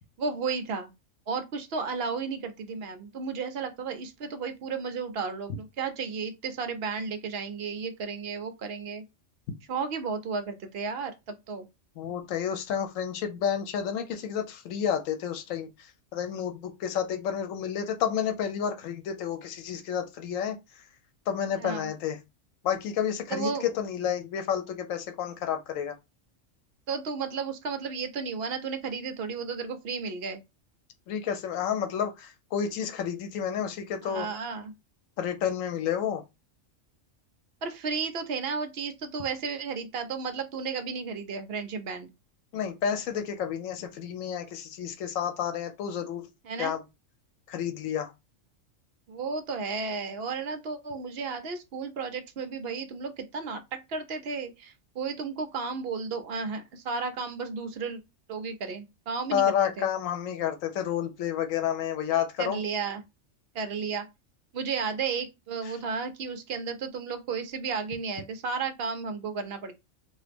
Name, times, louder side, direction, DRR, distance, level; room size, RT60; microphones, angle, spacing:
voice 1, 0.2-0.9 1.3-9.0 9.7-11.7 21.6-21.9 23.3-23.7 26.9-30.4 34.0-34.7 37.6-42.1 46.5-46.8 49.1-58.0 58.3-59.4 59.8-59.9 62.4-63.0 63.5-64.1 64.5-69.7, right 5 dB, 60° right, 0.7 m, -33 dB
voice 2, 12.0-20.6 21.3-22.2 22.6-25.9 31.1-34.3 35.2-36.2 42.5-46.3 46.6-46.8 47.5-48.1 59.3-62.6 65.7-65.8, left 8 dB, 85° left, 1.0 m, -30 dB
2.9 x 2.4 x 3.3 m
omnidirectional pair, 1.3 m